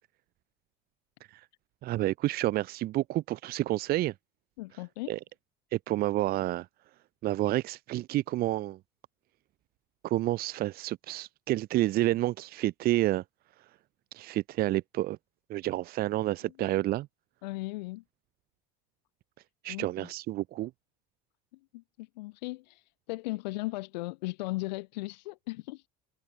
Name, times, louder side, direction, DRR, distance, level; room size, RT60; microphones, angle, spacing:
voice 1, 1.8-4.1 5.1-5.2 5.7-6.7 7.2-8.8 10.0-13.2 14.1-15.2 15.5-17.1 19.6-20.7, right 16 dB, 45° right, 0.6 m, -29 dB
voice 2, 4.6-5.2 17.4-18.0 19.7-20.1 21.7-25.8, left 21 dB, 85° left, 0.8 m, -37 dB
supercardioid pair, 110°, 21 cm